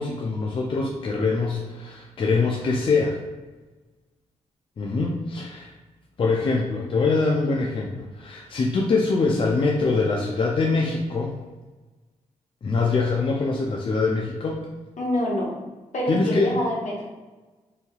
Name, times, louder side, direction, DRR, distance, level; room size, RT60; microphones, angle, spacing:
voice 1, 0.0-3.2 4.8-5.7 6.2-11.4 12.6-14.6 16.1-16.5, left 3 dB, 40° left, -1 dB, 0.4 m, -23 dB
voice 2, 15.0-15.6 15.9-17.0, left 1 dB, 65° left, -2 dB, 0.8 m, -26 dB
3.1 x 2.7 x 2.3 m, 1.2 s
cardioid pair, 60°, 13 cm